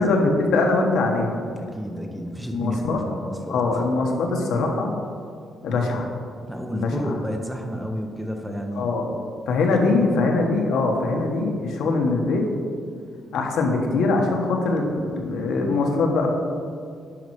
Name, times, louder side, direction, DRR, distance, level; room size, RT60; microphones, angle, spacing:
voice 1, 0.0-1.4 2.5-3.0 3.5-4.9 5.6-6.1 6.7-7.1 8.8-9.2 9.5-12.4 13.3-16.3, left 3 dB, 75° left, 1 dB, 1.3 m, -22 dB
voice 2, 1.6-3.8 6.5-9.0 10.0-10.2, equal, 5° right, 3 dB, 0.6 m, -31 dB
10.5 x 5.4 x 4.8 m, 2.2 s
cardioid pair, 175°, 0 cm